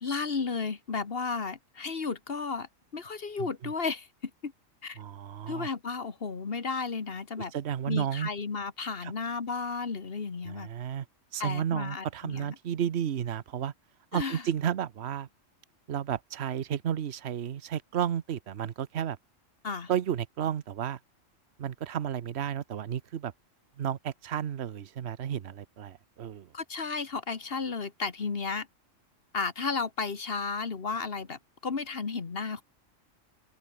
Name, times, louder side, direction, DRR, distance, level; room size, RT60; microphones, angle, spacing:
voice 1, 0.0-4.1 4.4-4.5 4.8-5.0 5.5-7.5 7.9-10.7 11.4-12.5 14.1-14.4 19.6-19.9 26.5-28.7 29.3-32.6, left 4 dB, 45° left, 1.7 m, -33 dB
voice 2, 3.4-3.7 5.0-5.7 7.5-8.3 9.0-9.1 10.4-11.0 11.3-13.7 14.1-15.3 15.9-19.2 19.9-21.0 21.6-23.3 23.8-26.5, right 9 dB, 60° right, 1.1 m, -32 dB
open air
omnidirectional pair, 1.4 m